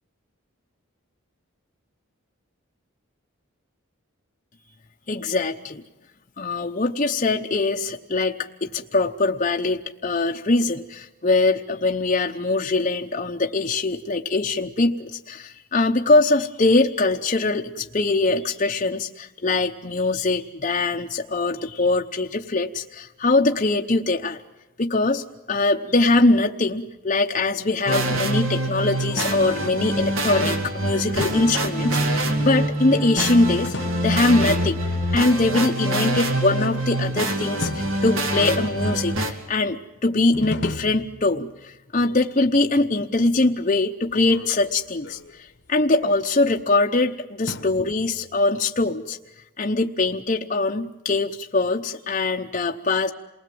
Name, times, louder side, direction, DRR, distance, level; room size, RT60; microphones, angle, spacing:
voice 1, 5.1-5.8 6.4-24.4 24.8-33.7 34.0-34.8 35.1-49.2 49.6-53.1, left 2 dB, 35° left, 2 dB, 0.8 m, -22 dB
sound 1, 27.9-39.3, right 1 dB, 65° right, 2.6 m, -25 dB
sound 2, 28.8-30.6 31.2-31.8 33.5-34.3 36.4-37.1 37.6-38.7 40.3-41.7 44.1-46.6 47.5-48.4, left 2 dB, 55° left, 1.0 m, -37 dB
28.5 x 20.0 x 7.7 m, 1.1 s
head